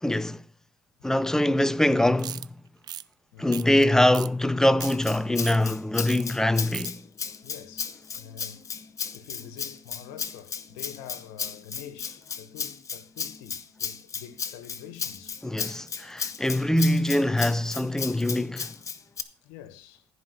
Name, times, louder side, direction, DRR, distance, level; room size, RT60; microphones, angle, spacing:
voice 1, 0.0-0.4 1.0-2.6 3.4-7.0 15.4-18.7, left 1 dB, 5° left, 0.7 m, -23 dB
sound 1, 2.2-2.5 2.8-3.0 3.5-3.8 4.1-4.3 4.6-5.0 5.4-5.6 6.1-6.2 6.5-6.9, right 10 dB, 45° right, 0.5 m, -37 dB
Rattle (instrument), 4.8-19.2, left 6 dB, 35° left, 1.2 m, -35 dB
voice 2, 7.4-8.8 9.1-15.4 19.4-20.1, left 10 dB, 80° left, 1.6 m, -46 dB
15.0 x 5.3 x 6.8 m
supercardioid pair, 80°, 10 cm